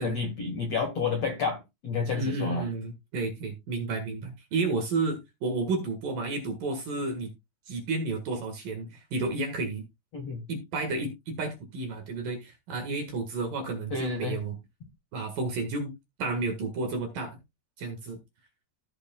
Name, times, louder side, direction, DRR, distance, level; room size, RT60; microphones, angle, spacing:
voice 1, 0.0-2.7 10.1-10.4 13.9-14.4, left 5 dB, 60° left, 1.7 m, -30 dB
voice 2, 2.1-7.3 7.7-9.9 10.5-14.6 15.1-15.9 16.2-17.4 17.8-18.2, right 3 dB, 60° right, 2.7 m, -31 dB
16.0 x 6.5 x 2.3 m
omnidirectional pair, 5.8 m